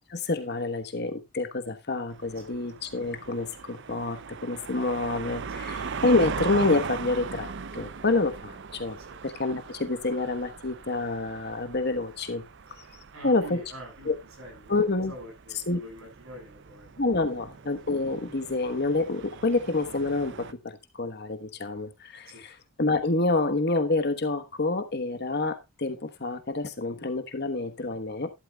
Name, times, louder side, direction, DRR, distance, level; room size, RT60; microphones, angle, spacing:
voice 1, 0.1-9.0 9.2-12.4 13.2-13.6 14.1-14.2 14.7-15.1 15.7-15.8 17.0-28.3, left 2 dB, 45° left, 1.2 m, -28 dB
sound 1, 2.1-20.5, right 5 dB, 55° right, 0.6 m, -40 dB
voice 2, 13.1-14.8 15.1-17.1 22.3-22.4, equal, 70° right, 7.7 m, -46 dB
12.5 x 11.5 x 2.3 m
head